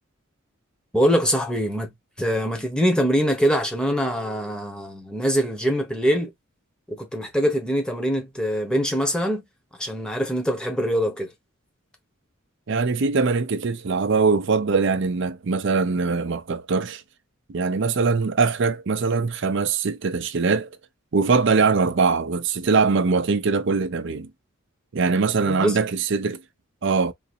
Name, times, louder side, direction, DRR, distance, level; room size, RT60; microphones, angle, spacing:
voice 1, 0.9-6.3 6.9-9.4 9.8-11.3 25.5-25.8, equal, 5° left, 1.1 m, -23 dB
voice 2, 12.7-17.0 17.5-20.7 21.1-24.3 24.9-26.4 26.8-27.1, right 4 dB, 60° right, 0.5 m, -22 dB
3.8 x 2.6 x 2.7 m
head